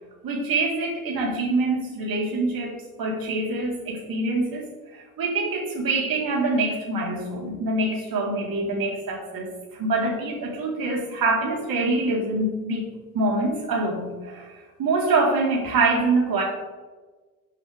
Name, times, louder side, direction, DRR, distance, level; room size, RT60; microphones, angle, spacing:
voice 1, 0.2-12.9 13.1-14.5 14.8-16.4, right 2 dB, 50° right, -2 dB, 4.0 m, -25 dB
15.0 x 8.3 x 3.5 m, 1.3 s
figure-of-eight pair, 55°, 45 cm